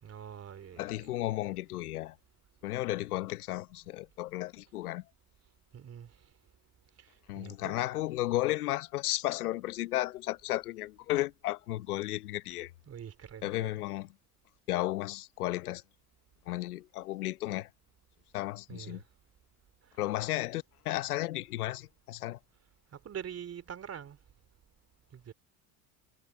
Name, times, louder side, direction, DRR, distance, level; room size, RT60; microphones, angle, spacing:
voice 1, 0.0-1.3 5.7-6.2 7.0-7.8 12.9-13.8 18.7-19.0 19.9-20.1 22.9-24.2 25.1-25.3, right 8 dB, 35° right, 3.3 m, -45 dB
voice 2, 0.8-2.2 2.6-5.0 7.3-12.7 13.4-14.1 14.7-15.8 16.5-17.7 18.3-19.0 20.0-22.4, left 16 dB, 85° left, 1.1 m, -34 dB
hypercardioid pair, 90°, 44 cm